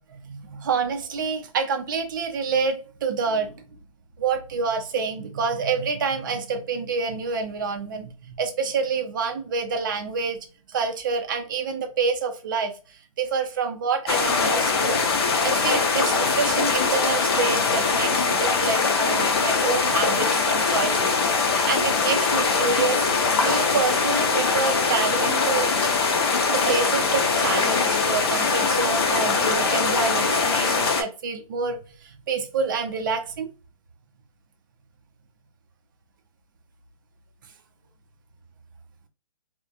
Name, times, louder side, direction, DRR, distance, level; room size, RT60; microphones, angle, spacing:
voice 1, 0.3-3.5 4.2-10.4 10.7-12.7 13.2-15.0 15.4-23.1 23.4-25.7 26.5-31.8 32.3-33.5, right 5 dB, 35° right, 0.4 m, -27 dB
sound 1, 14.1-31.0, left 4 dB, 45° left, 0.5 m, -22 dB
2.3 x 2.1 x 2.6 m
hypercardioid pair, 165°, 19 cm